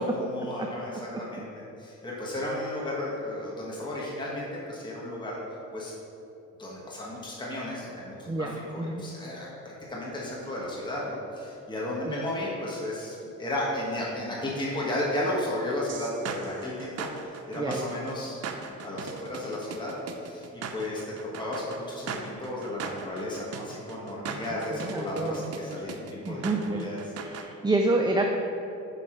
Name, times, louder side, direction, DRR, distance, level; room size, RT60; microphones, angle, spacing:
voice 1, 0.0-5.9 6.6-18.4 18.7-19.9 20.2-21.0 21.4-27.0, left 1 dB, 15° left, -5 dB, 1.4 m, -34 dB
voice 2, 8.3-9.0 12.1-12.2 17.6-17.8 24.3-24.4 24.7-25.5 26.2-26.8 27.2-28.4, right 2 dB, 15° right, 2 dB, 0.5 m, -28 dB
sound 1, 15.9-27.5, right 6 dB, 55° right, 0.7 m, -39 dB
5.2 x 5.0 x 5.8 m, 2.8 s
cardioid pair, 90°, 30 cm